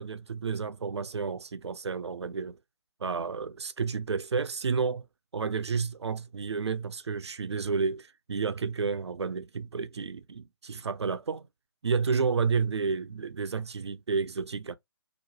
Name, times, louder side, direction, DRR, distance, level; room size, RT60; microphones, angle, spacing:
voice 1, 0.0-2.6 3.0-5.1 5.3-11.5 11.8-14.7, right 5 dB, 75° right, 0.5 m, -31 dB
2.9 x 2.0 x 2.9 m
figure-of-eight pair, 145°, 14 cm